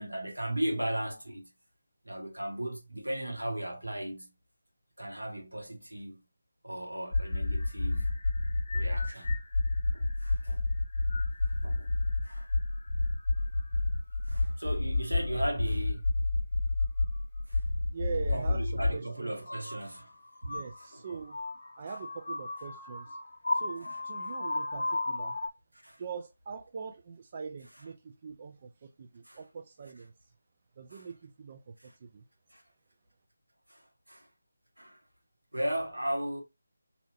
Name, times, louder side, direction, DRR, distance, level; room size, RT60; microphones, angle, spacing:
voice 1, 0.0-1.5 2.0-4.3 5.0-6.2 6.6-8.2 8.7-9.4 9.9-10.6 11.6-11.9 12.2-12.5 14.3-16.2 17.5-17.6 18.3-20.1 20.4-20.5 20.9-21.0 23.8-24.0 24.8-24.9 25.7-26.0 29.2-29.4 30.9-31.1 31.8-31.9 32.5-32.6 33.7-34.3 34.8-35.0 35.5-36.4, right 1 dB, 85° right, 1.3 m, -36 dB
sound 1, 7.1-19.0 19.4-25.5, left 2 dB, 60° left, 0.6 m, -31 dB
voice 2, 17.9-19.4 20.4-21.4 21.8-23.2 23.5-25.4 26.0-30.1 30.8-32.2, right 5 dB, 35° right, 0.4 m, -42 dB
4.2 x 2.7 x 2.7 m
figure-of-eight pair, 160°, 0 cm